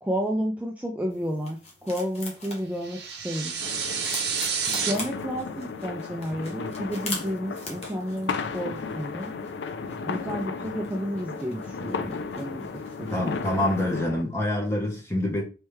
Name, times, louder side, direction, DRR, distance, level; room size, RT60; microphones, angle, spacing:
voice 1, 0.0-3.6 4.8-9.3 10.0-12.7 13.0-13.3, equal, 10° right, 0.4 m, -31 dB
sound 1, 1.1-14.0, left 3 dB, 40° left, 1.0 m, -43 dB
sound 2, 2.8-4.9, right 6 dB, 70° right, 0.8 m, -29 dB
sound 3, 3.6-14.2, left 4 dB, 90° left, 0.4 m, -35 dB
voice 2, 13.1-15.4, left 1 dB, 15° left, 1.0 m, -26 dB
3.3 x 3.3 x 3.1 m
head